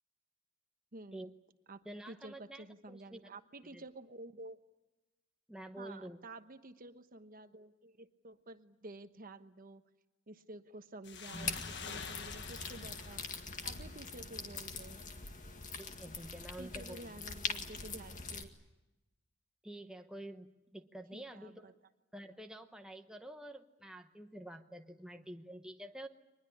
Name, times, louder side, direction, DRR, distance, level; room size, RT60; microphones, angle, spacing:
voice 1, 0.9-1.3 1.7-1.8 2.1-4.6 5.8-9.8 10.3-13.2 13.6-15.0 16.6-18.5 21.1-21.7, right 2 dB, 40° right, 9 dB, 1.1 m, -51 dB
voice 2, 1.8-3.2 3.7-3.8 5.5-6.2 15.8-17.3 19.6-21.8 22.1-26.1, right 1 dB, 5° right, 4 dB, 0.9 m, -48 dB
sound 1, 11.0-14.4, left 6 dB, 55° left, 1.5 m, -48 dB
sound 2, 11.3-18.4, left 4 dB, 40° left, 1.9 m, -43 dB
24.0 x 20.5 x 9.9 m, 1.0 s
head